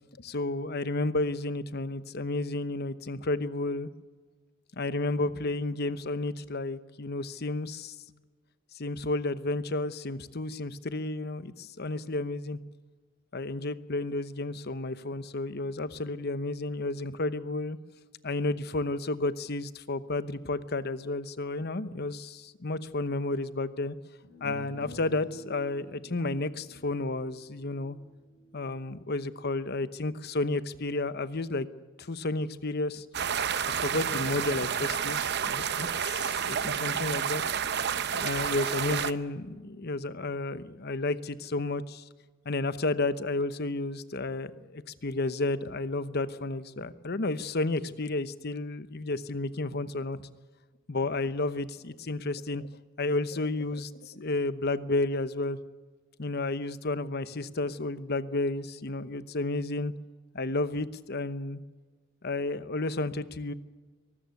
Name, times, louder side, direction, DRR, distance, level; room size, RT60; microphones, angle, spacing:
voice 1, 0.2-3.9 4.8-7.9 8.7-12.6 13.3-17.8 18.2-24.0 24.4-28.0 28.5-31.7 32.0-33.0 33.7-37.4 38.1-42.0 42.4-50.2 50.9-52.7 53.0-55.6 56.2-59.9 60.3-61.6 62.2-63.5, left 2 dB, 50° left, 13 dB, 0.9 m, -32 dB
sound 1, 24.2-29.5, right 1 dB, 70° left, 6.3 m, -49 dB
sound 2, 33.1-39.1, right 7 dB, 55° right, 0.8 m, -30 dB
23.5 x 13.5 x 9.6 m, 1.4 s
head